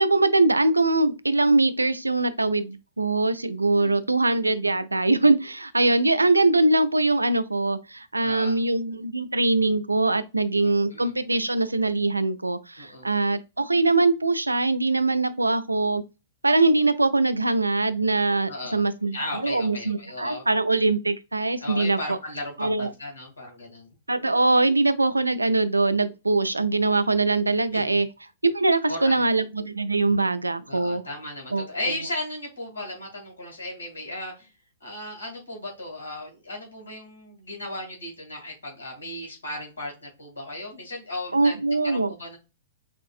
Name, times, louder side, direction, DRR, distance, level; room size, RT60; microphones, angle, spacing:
voice 1, 0.0-16.0 16.4-19.2 19.4-22.0 22.6-22.9 24.1-28.1 28.4-31.0 31.5-31.7 41.3-42.1, right 2 dB, 90° right, 0.4 m, -22 dB
voice 2, 3.7-4.0 8.2-8.6 10.5-11.1 12.8-13.1 18.5-18.8 19.1-20.5 21.6-23.9 27.7-28.0 28.9-29.3 30.0-30.2 30.7-34.5 34.8-41.6 41.8-42.4, left 1 dB, 75° left, 2.1 m, -36 dB
6.0 x 2.6 x 2.4 m
figure-of-eight pair, 105°, 0 cm